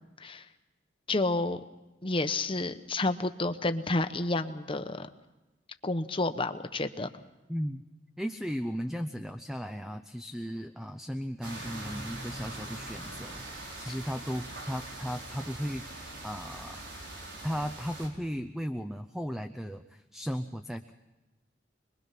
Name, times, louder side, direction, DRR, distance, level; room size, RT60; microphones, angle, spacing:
voice 1, 1.1-1.6 2.0-5.1 5.8-7.1, left 2 dB, 30° left, 9 dB, 1.0 m, -30 dB
voice 2, 7.5-7.8 8.2-13.4 13.8-16.8 17.4-20.9, equal, ahead, 8 dB, 0.6 m, -36 dB
sound 1, 11.4-18.1, right 1 dB, 90° right, 5.0 m, -42 dB
25.5 x 21.5 x 5.8 m, 1.1 s
head